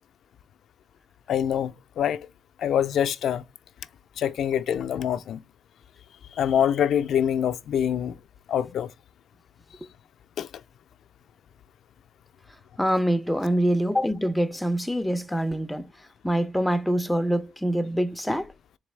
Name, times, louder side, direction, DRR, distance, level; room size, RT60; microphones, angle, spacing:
voice 1, 1.3-2.2 2.6-3.4 4.2-5.4 6.4-8.1 8.5-8.9 10.4-10.5, left 9 dB, 70° left, 0.3 m, -25 dB
voice 2, 12.8-15.9 16.2-18.5, equal, ahead, 0.4 m, -25 dB
3.9 x 3.0 x 3.2 m
cardioid pair, 120°, 0 cm